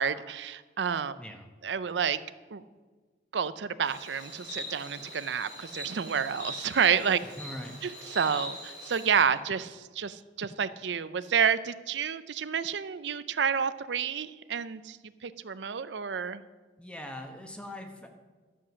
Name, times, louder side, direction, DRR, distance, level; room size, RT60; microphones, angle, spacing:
voice 1, 0.0-1.2 1.6-2.2 2.5-2.6 3.3-7.2 7.8-15.0 15.2-16.4, right 7 dB, 80° right, 14 dB, 0.5 m, -29 dB
voice 2, 1.2-1.5 7.2-7.8 16.8-18.1, left 1 dB, 5° left, 4 dB, 1.0 m, -42 dB
Insect, 3.8-9.2, equal, 85° left, 4.5 m, -42 dB
12.5 x 7.6 x 6.2 m, 1.4 s
head